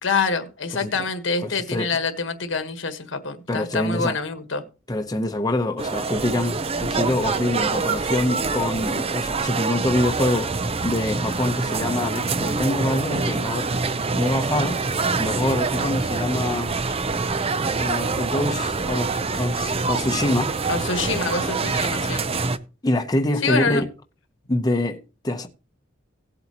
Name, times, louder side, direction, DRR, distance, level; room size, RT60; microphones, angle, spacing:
voice 1, 0.0-4.6 20.7-22.2 23.4-23.8, left 4 dB, 80° left, 1.4 m, -26 dB
voice 2, 1.4-1.9 3.5-4.2 4.9-10.5 10.8-13.8 14.1-14.9 15.2-16.7 17.8-20.6 22.8-23.8 24.5-25.5, left 1 dB, 20° left, 0.8 m, -25 dB
sound 1, 5.8-22.6, right 4 dB, 30° right, 0.6 m, -25 dB
17.5 x 8.0 x 3.0 m
head